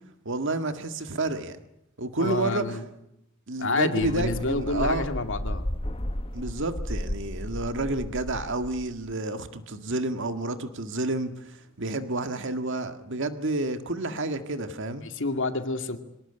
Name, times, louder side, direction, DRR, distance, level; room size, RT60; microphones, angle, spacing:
voice 1, 0.2-1.6 2.0-2.8 3.5-5.1 6.3-15.0, right 2 dB, 60° right, 1.8 m, -30 dB
voice 2, 2.2-2.8 3.6-5.6 15.1-16.0, left 3 dB, 65° left, 2.3 m, -28 dB
sound 1, 4.0-9.1, left 1 dB, 25° left, 1.3 m, -34 dB
25.5 x 19.0 x 9.9 m
head